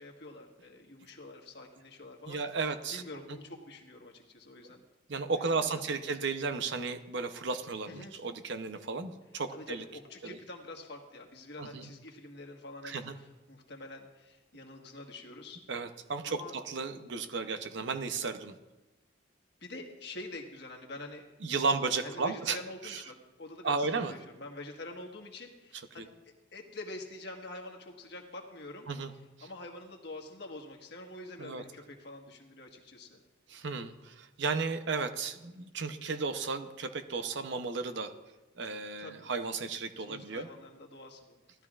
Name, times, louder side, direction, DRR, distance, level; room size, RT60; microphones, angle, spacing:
voice 1, 0.0-2.4 2.9-4.8 5.5-6.1 7.9-8.1 9.5-15.6 16.2-16.6 19.6-21.3 22.0-26.1 26.5-28.9 29.4-33.2 39.0-39.3 40.0-41.7, left 2 dB, 55° left, 2 dB, 1.5 m, -46 dB
voice 2, 2.3-3.0 5.1-9.8 10.2-10.4 11.6-11.9 12.8-13.1 15.7-18.5 21.4-22.6 22.8-23.0 23.6-24.1 26.0-26.1 28.9-29.1 31.4-31.6 33.5-38.1 38.6-40.5, right 4 dB, 60° right, 8 dB, 0.7 m, -34 dB
17.5 x 12.5 x 2.4 m, 1.1 s
head